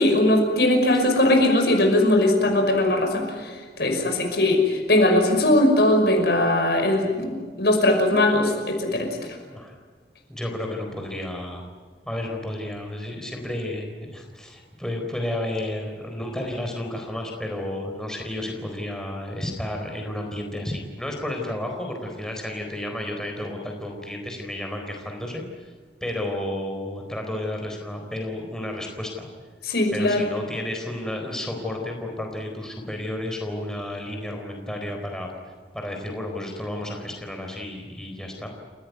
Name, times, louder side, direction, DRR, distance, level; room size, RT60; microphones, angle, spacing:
voice 1, 0.0-9.1 29.6-30.3, left 1 dB, 65° left, 3 dB, 5.7 m, -20 dB
voice 2, 10.3-11.7 12.0-25.7 26.0-29.3 29.9-35.3 35.7-38.5, left 1 dB, 5° left, 1 dB, 4.2 m, -32 dB
29.5 x 17.5 x 9.5 m, 1.5 s
head